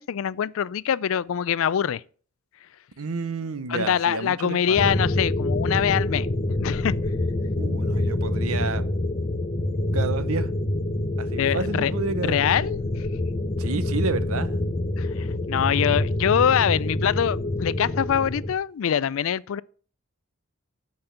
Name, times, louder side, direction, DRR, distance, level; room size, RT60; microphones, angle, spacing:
voice 1, 0.0-2.0 3.7-6.9 11.4-12.8 15.0-19.6, left 8 dB, 65° left, 0.3 m, -24 dB
voice 2, 3.0-4.9 7.6-8.9 9.9-10.5 11.2-12.6 13.6-14.6, right 4 dB, 75° right, 0.8 m, -30 dB
sound 1, 4.8-18.5, left 1 dB, 30° left, 0.6 m, -26 dB
7.8 x 5.3 x 7.0 m
head